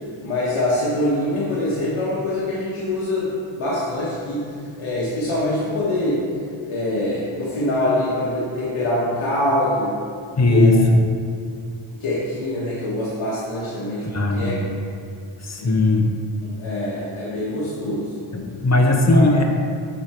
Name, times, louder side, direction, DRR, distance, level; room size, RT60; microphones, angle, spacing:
voice 1, 0.2-4.4 4.8-6.2 6.7-9.9 10.5-10.8 12.0-14.5 15.6-15.7 16.4-18.1 19.1-19.3, left 1 dB, 80° left, -8 dB, 1.4 m, -24 dB
voice 2, 10.4-11.0 14.0-14.6 15.4-16.1 18.3-19.4, left 2 dB, 35° left, 2 dB, 0.9 m, -17 dB
7.0 x 4.7 x 4.4 m, 2.3 s
cardioid pair, 75°, 48 cm